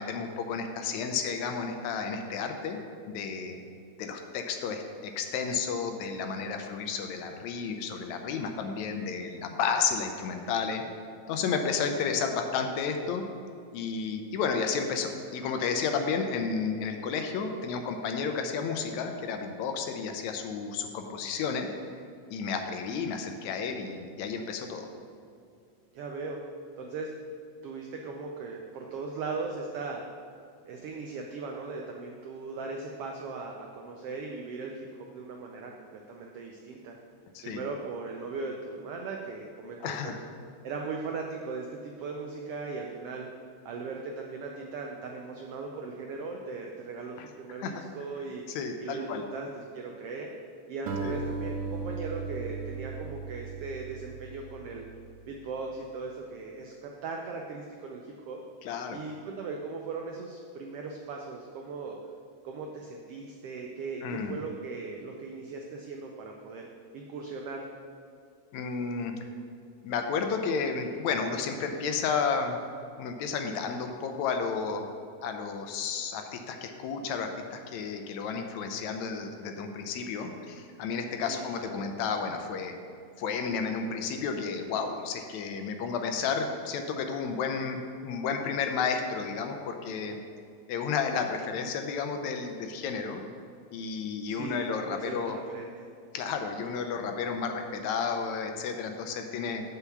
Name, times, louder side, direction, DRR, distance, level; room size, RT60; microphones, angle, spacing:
voice 1, 0.0-2.8 3.1-3.6 4.0-10.8 11.3-13.2 13.7-21.7 22.3-24.9 37.4-37.6 39.8-40.2 47.2-47.3 47.6-47.8 48.5-49.2 51.0-51.1 58.6-59.0 64.0-64.3 68.5-69.1 69.8-72.6 73.0-74.9 75.2-82.7 83.2-90.2 90.7-93.2 93.7-95.4 96.1-99.6, left 5 dB, 80° left, 5 dB, 1.9 m, -32 dB
voice 2, 25.9-26.4 26.8-27.1 27.6-30.0 30.7-37.0 37.4-40.1 40.6-43.3 43.6-48.4 48.8-50.3 50.7-54.8 55.3-58.4 58.9-62.0 62.4-66.7 66.9-67.7 81.3-81.9 94.3-95.9, right 4 dB, 90° right, 1 dB, 1.3 m, -38 dB
Acoustic guitar, 50.9-55.3, right 4 dB, 70° right, 1.4 m, -37 dB
6.9 x 4.6 x 6.9 m, 2.4 s
omnidirectional pair, 3.4 m